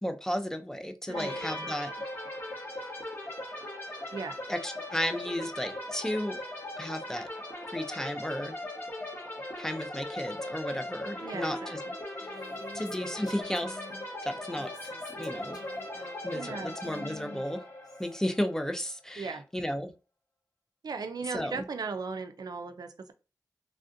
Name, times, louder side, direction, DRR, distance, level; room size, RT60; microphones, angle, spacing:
voice 1, 0.0-1.9 4.5-6.4 6.8-7.3 7.7-8.5 9.6-11.8 12.2-12.3 12.7-13.8 14.3-14.7 15.2-15.6 16.2-17.6 18.0-19.9 21.3-21.6, equal, 10° left, 7 dB, 0.5 m, -33 dB
sound 1, 1.1-18.7, left 1 dB, 35° left, 1.3 m, -39 dB
voice 2, 1.1-1.4 4.1-4.4 11.2-11.9 16.3-16.8 19.2-19.4 20.8-23.1, right 4 dB, 75° right, 8 dB, 0.4 m, -37 dB
Female speech woman speaking, 12.2-14.1 14.4-18.2, left 3 dB, 70° left, 0.7 m, -49 dB
3.3 x 2.5 x 2.6 m, 0.32 s
cardioid pair, 45°, 7 cm